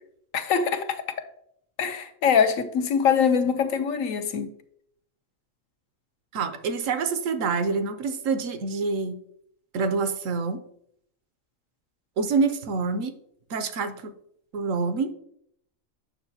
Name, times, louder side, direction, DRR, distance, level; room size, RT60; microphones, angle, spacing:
voice 1, 0.3-1.0 1.8-4.5, left 7 dB, 80° left, 1.1 m, -23 dB
voice 2, 6.3-9.1 9.7-10.6 12.2-13.1 13.5-14.1 14.5-15.1, right 4 dB, 75° right, 1.0 m, -26 dB
8.8 x 6.4 x 2.7 m
omnidirectional pair, 1.4 m